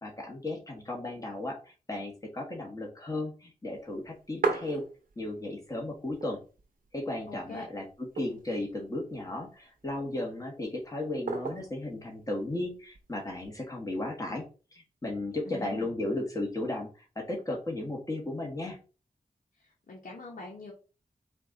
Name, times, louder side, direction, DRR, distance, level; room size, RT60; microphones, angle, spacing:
voice 1, 0.0-4.8 5.2-6.4 6.9-14.4 14.7-18.8, left 2 dB, 25° left, 0 dB, 1.6 m, -35 dB
sound 1, 3.9-5.4 5.8-5.9 6.1-6.9 7.3-7.4 7.9-8.7 9.4-10.1 11.3-11.8 12.9-13.5, right 4 dB, 85° right, 0.9 m, -34 dB
voice 2, 7.3-7.7 15.4-15.9 19.6-20.7, left 2 dB, 70° left, -2 dB, 1.1 m, -43 dB
4.4 x 2.6 x 4.2 m, 0.33 s
wide cardioid pair, 75°, 14 cm